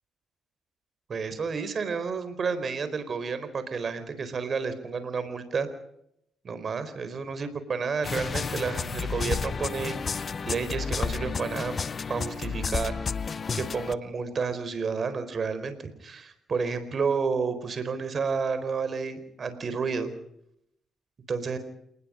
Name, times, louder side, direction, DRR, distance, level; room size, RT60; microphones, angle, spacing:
voice 1, 1.1-5.7 6.4-11.7 12.1-13.0 13.5-20.1 21.3-21.6, right 5 dB, 45° right, 11 dB, 4.3 m, -31 dB
sound 1, 8.0-13.9, left 5 dB, 40° left, 0.7 m, -31 dB
28.0 x 20.0 x 5.1 m, 0.76 s
cardioid pair, 90°, 0 cm